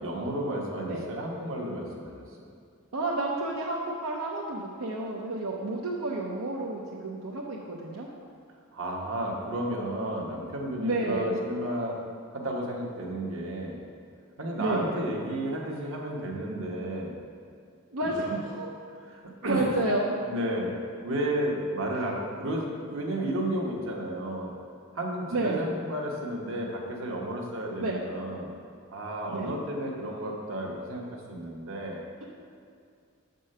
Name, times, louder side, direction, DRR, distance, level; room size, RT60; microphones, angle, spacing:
voice 1, 0.0-2.2 8.7-12.0 12.3-13.8 14.4-17.2 18.1-18.4 19.0-19.7 20.2-20.7 21.0-24.5 24.9-28.5 28.9-32.0, right 1 dB, 70° right, -1 dB, 1.2 m, -32 dB
voice 2, 2.9-8.1 10.8-11.4 14.6-15.0 17.9-18.8 19.5-20.2 25.3-25.6 27.8-28.0 29.3-29.5, right 2 dB, 85° right, -3 dB, 0.8 m, -30 dB
6.6 x 5.3 x 6.6 m, 2.3 s
head